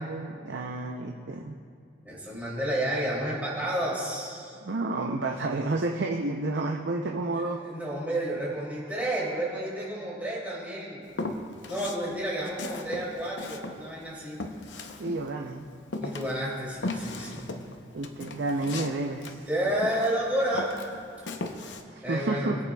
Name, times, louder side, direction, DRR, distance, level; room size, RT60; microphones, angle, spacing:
voice 1, 0.0-1.5 4.6-7.6 15.0-15.7 17.9-19.5 21.9-22.6, right 2 dB, 75° right, 2 dB, 0.6 m, -30 dB
voice 2, 2.0-4.6 7.6-11.0 11.7-14.4 16.0-17.5 19.5-20.7 22.0-22.6, right 1 dB, 10° right, -7 dB, 2.7 m, -30 dB
Walk footsteps, 11.1-12.0 12.4-15.5 15.9-20.2 20.5-21.8, left 2 dB, 85° left, 0.7 m, -36 dB
20.5 x 8.4 x 2.3 m, 2.3 s
head